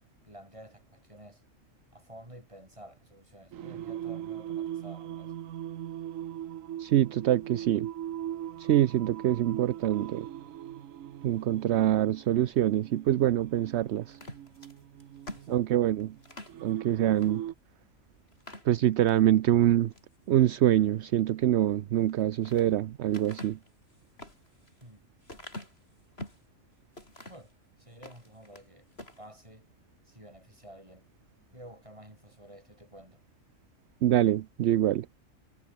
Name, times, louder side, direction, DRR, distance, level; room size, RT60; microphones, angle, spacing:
voice 1, 0.2-1.4 1.9-5.4 15.3-15.8 24.8-25.1 27.3-28.9 29.2-29.7 30.0-31.1 31.5-33.2, right 1 dB, 25° right, 7.4 m, -51 dB
Singing, 3.5-17.5, right 11 dB, 80° right, 1.2 m, -40 dB
voice 2, 6.8-7.9 8.6-10.2 11.2-14.2 15.5-16.1 16.6-17.4 18.7-19.9 20.3-23.6 34.0-35.1, right 12 dB, 65° right, 0.8 m, -25 dB
sound 1, 14.1-16.6 17.2-17.4 17.7-17.8 18.3-19.2 19.7-20.2 22.0-22.7 23.1-26.5 26.9-27.5 27.9-28.7 28.9-29.2, left 1 dB, 50° left, 7.4 m, -46 dB
omnidirectional pair, 1.4 m